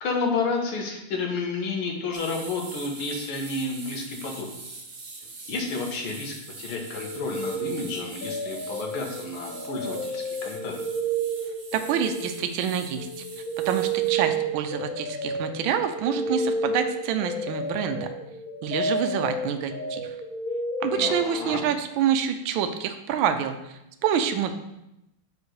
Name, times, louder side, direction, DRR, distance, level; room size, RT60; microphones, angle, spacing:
voice 1, 0.0-4.5 5.5-10.8 20.9-21.6, left 3 dB, 85° left, 1 dB, 2.1 m, -31 dB
sound 1, 2.1-14.1, right 3 dB, 50° right, 0.6 m, -43 dB
sound 2, 6.7-12.7 13.0-21.6, right 2 dB, 50° left, 1.5 m, -31 dB
voice 2, 11.7-13.1 13.6-18.1 18.6-20.1 20.8-24.5, right 8 dB, 75° right, 7 dB, 1.4 m, -27 dB
5.2 x 4.9 x 6.3 m, 0.87 s
omnidirectional pair, 2.3 m